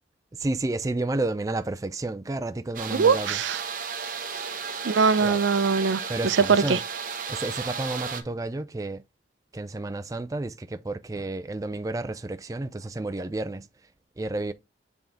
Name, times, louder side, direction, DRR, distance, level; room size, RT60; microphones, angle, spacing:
voice 1, 0.3-3.4 5.2-5.4 6.1-6.8 7.3-9.0 9.5-13.7 14.2-14.5, right 2 dB, 20° right, 0.4 m, -31 dB
sound 1, 2.7-8.2, right 6 dB, 45° right, 0.8 m, -34 dB
voice 2, 2.9-3.6 4.8-6.8, right 5 dB, 85° right, 0.5 m, -22 dB
7.0 x 3.8 x 3.5 m
head